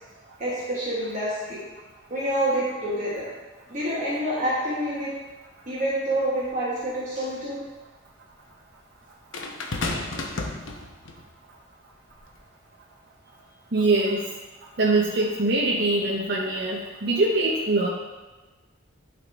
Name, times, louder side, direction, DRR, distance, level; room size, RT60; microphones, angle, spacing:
voice 1, 0.4-1.6 2.1-3.3 3.7-5.1 5.7-7.6, right 1 dB, 40° right, -8 dB, 1.5 m, -27 dB
sound 1, 6.4-6.5 9.3-11.2 12.1-12.4, left 2 dB, 85° left, 0.9 m, -32 dB
voice 2, 13.7-14.3 14.8-17.9, right 2 dB, 55° right, -3 dB, 0.7 m, -23 dB
11.5 x 3.8 x 3.4 m, 1.2 s
head